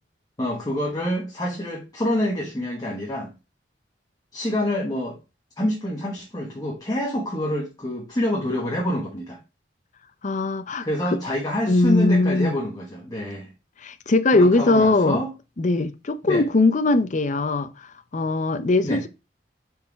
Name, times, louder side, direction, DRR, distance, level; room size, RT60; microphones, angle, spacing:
voice 1, 0.4-3.3 4.3-5.2 5.6-9.4 10.8-13.5 14.3-15.3 16.2-16.4 18.8-19.0, left 1 dB, 20° left, 1.3 m, -26 dB
voice 2, 10.2-11.2 11.7-12.6 13.8-15.2 15.6-19.1, left 2 dB, 45° left, 0.6 m, -21 dB
5.6 x 4.6 x 4.7 m
head